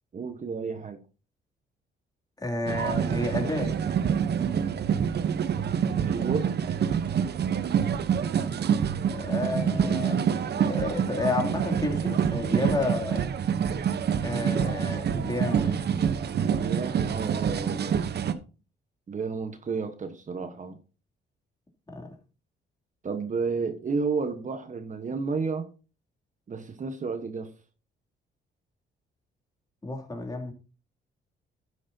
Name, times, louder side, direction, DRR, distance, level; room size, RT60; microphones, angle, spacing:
voice 1, 0.1-1.0 5.9-6.5 15.5-15.7 16.4-18.1 19.1-20.8 23.0-25.7 26.5-27.5, right 4 dB, 40° right, 1.3 m, -32 dB
voice 2, 2.4-3.8 9.1-10.2 10.5-13.3 14.2-15.8 21.9-22.1 29.8-30.5, left 2 dB, 20° left, 3.0 m, -31 dB
sound 1, 2.7-18.3, right 7 dB, 55° right, 1.0 m, -26 dB
12.0 x 9.7 x 2.8 m
cardioid pair, 90°, 20 cm